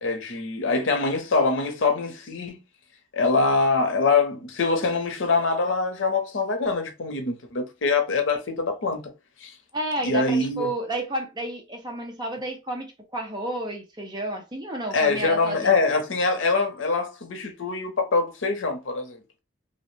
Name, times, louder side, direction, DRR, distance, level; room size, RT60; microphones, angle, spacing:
voice 1, 0.0-2.6 3.1-9.0 9.4-9.5 10.0-10.7 14.9-19.2, left 3 dB, 85° left, 0.7 m, -24 dB
voice 2, 9.7-15.8, right 1 dB, 25° right, 0.7 m, -31 dB
2.6 x 2.1 x 3.1 m
head